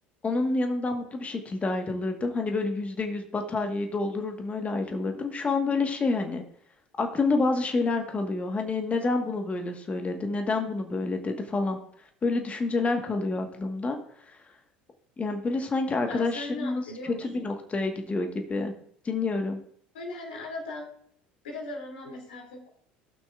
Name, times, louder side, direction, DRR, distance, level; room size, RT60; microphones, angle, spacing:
voice 1, 0.2-6.4 7.0-11.8 12.2-14.0 14.3-14.4 15.2-18.7 19.0-19.6, left 3 dB, 25° left, 5 dB, 1.3 m, -28 dB
voice 2, 16.1-17.5 19.9-20.9 21.4-22.7, left 2 dB, 80° left, -1 dB, 2.6 m, -38 dB
16.5 x 6.0 x 2.4 m, 0.64 s
hypercardioid pair, 70°, 5 cm